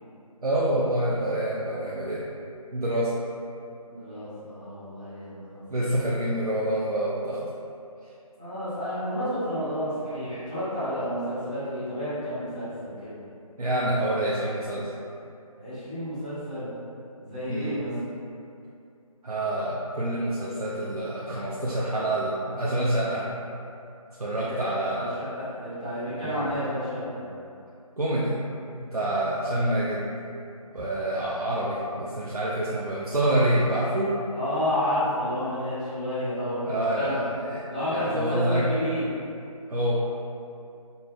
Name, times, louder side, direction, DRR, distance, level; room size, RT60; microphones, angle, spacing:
voice 1, 0.4-2.2 2.7-3.1 5.7-7.4 13.6-14.9 17.5-17.8 19.2-23.3 24.2-25.2 26.2-26.5 28.0-28.4 28.8-30.1 30.7-34.1 36.7-37.6 37.9-38.7 39.7-39.9, right 1 dB, 85° right, -7 dB, 0.6 m, -27 dB
voice 2, 3.9-5.6 8.4-13.2 15.6-16.7 17.2-17.9 24.4-24.7 25.0-27.3 34.3-37.2 37.7-39.1, equal, 10° right, -16 dB, 0.5 m, -30 dB
5.4 x 2.0 x 2.4 m, 2.5 s
figure-of-eight pair, 160°, 19 cm